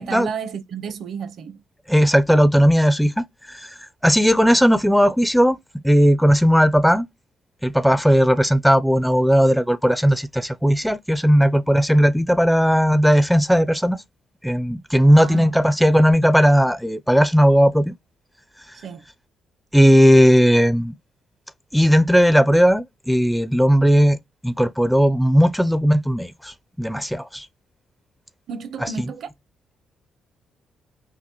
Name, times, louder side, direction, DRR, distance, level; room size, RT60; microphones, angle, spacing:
voice 1, 0.0-1.6 15.1-15.5 18.8-19.0 28.5-29.3, right 6 dB, 65° right, 0.6 m, -32 dB
voice 2, 1.9-3.8 4.0-5.6 5.8-7.0 7.6-14.0 14.4-17.9 19.7-20.9 21.7-24.2 24.4-27.5 28.8-28.9, equal, ahead, 0.4 m, -16 dB
5.8 x 2.2 x 2.9 m
cardioid pair, 90°, 0 cm